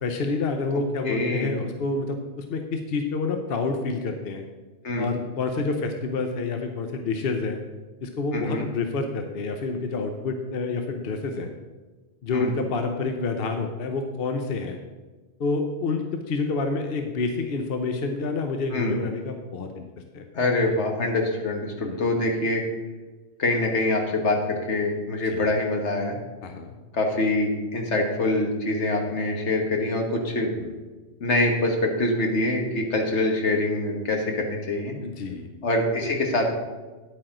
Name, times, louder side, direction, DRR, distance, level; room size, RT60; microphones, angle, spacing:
voice 1, 0.0-4.4 5.0-7.6 8.0-11.5 12.2-14.8 15.4-19.8 20.1-20.3 21.8-22.0 25.3-25.5 26.4-26.7 30.6-30.7 35.0-35.5, left 3 dB, 60° left, 5 dB, 0.9 m, -28 dB
voice 2, 1.1-1.5 4.8-5.1 8.3-8.7 12.3-12.5 18.7-19.0 20.3-22.6 23.4-26.2 26.9-30.5 31.2-34.9 35.6-36.5, left 2 dB, 80° left, 2 dB, 1.7 m, -25 dB
9.7 x 8.7 x 3.8 m, 1.3 s
omnidirectional pair, 1.1 m